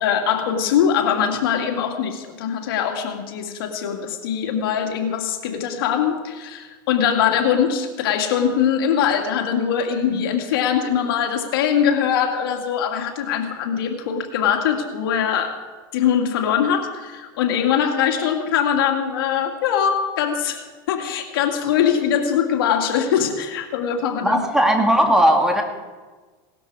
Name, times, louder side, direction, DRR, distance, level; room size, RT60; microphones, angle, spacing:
voice 1, 0.0-15.6 15.9-24.4, left 8 dB, 85° left, 4 dB, 2.1 m, -22 dB
voice 2, 24.2-25.6, right 1 dB, 5° right, 3 dB, 2.1 m, -17 dB
18.0 x 13.0 x 4.7 m, 1.3 s
supercardioid pair, 125°, 12 cm